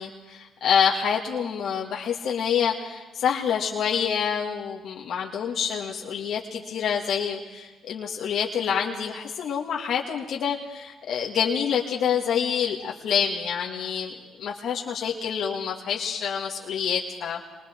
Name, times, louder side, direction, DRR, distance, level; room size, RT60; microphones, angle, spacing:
voice 1, 0.0-17.4, left 7 dB, 70° left, -2 dB, 1.9 m, -27 dB
26.5 x 23.0 x 4.4 m, 1.3 s
cardioid pair, 75°, 0 cm